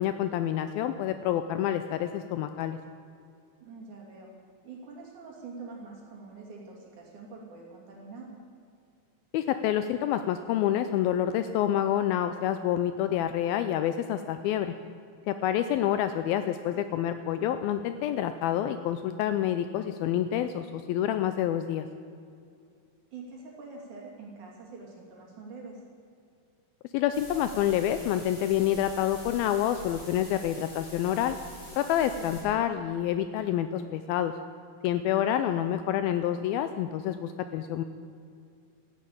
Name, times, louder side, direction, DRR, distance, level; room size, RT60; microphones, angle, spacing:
voice 1, 0.0-2.8 9.3-14.7 15.3-21.9 26.9-31.4 31.8-34.3 34.8-37.8, left 11 dB, 80° left, 10 dB, 2.2 m, -28 dB
voice 2, 3.6-4.3 4.6-8.4 15.8-16.0 23.1-25.8 32.2-32.5 35.2-35.6, right 4 dB, 50° right, -2 dB, 4.0 m, -45 dB
sound 1, 27.1-32.4, left 1 dB, 45° left, 5.7 m, -45 dB
14.0 x 11.0 x 8.6 m, 2.4 s
omnidirectional pair, 4.6 m